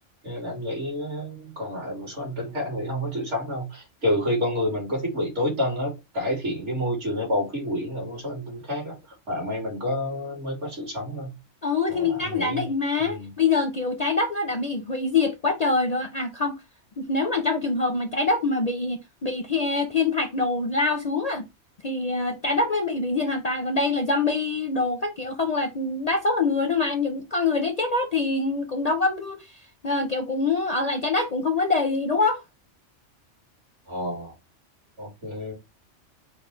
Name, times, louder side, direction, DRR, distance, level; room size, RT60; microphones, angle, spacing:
voice 1, 0.2-8.9 9.3-11.3 11.9-12.7 13.0-13.3 33.9-34.3 35.0-35.5, left 1 dB, 75° right, 3.0 m, -29 dB
voice 2, 11.6-16.6 17.0-21.5 21.8-29.4 29.8-32.4, left 3 dB, 45° left, 0.5 m, -25 dB
5.2 x 2.2 x 4.3 m
omnidirectional pair, 1.3 m